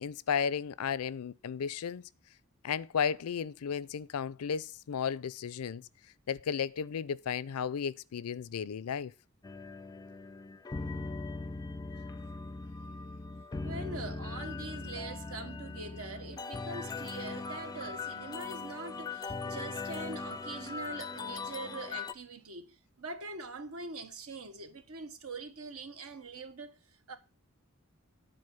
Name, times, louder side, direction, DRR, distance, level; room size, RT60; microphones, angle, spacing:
voice 1, 0.0-2.0 2.6-5.8 6.3-9.1, left 7 dB, 80° left, 0.4 m, -34 dB
sound 1, 9.4-22.1, left 3 dB, 20° left, 0.4 m, -40 dB
voice 2, 13.6-26.8 27.1-27.2, right 3 dB, 75° right, 1.2 m, -43 dB
9.8 x 4.2 x 6.9 m
head